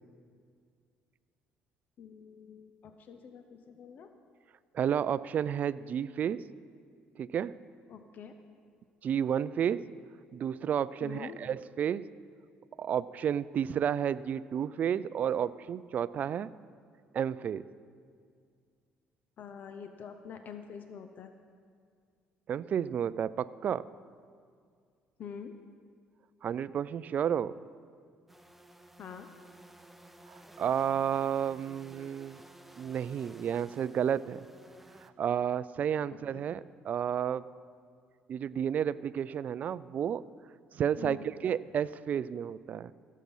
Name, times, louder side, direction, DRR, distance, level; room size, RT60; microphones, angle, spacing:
voice 1, 2.0-4.1 7.9-8.3 11.0-11.4 19.4-21.3 25.2-25.5 29.0-29.3 36.1-36.4 41.0-41.3, left 7 dB, 55° left, 7 dB, 0.7 m, -45 dB
voice 2, 4.7-6.4 7.2-7.5 9.0-9.8 10.3-12.0 12.8-16.5 17.1-17.6 22.5-23.9 26.4-27.5 30.3-32.4 32.8-34.4 35.0-37.4 38.3-40.2 40.7-41.2 41.4-42.9, right 8 dB, 50° right, 18 dB, 0.3 m, -31 dB
sound 1, 28.3-35.1, right 1 dB, 5° right, 0.6 m, -55 dB
16.0 x 7.4 x 5.5 m, 2.1 s
cardioid pair, 90°, 4 cm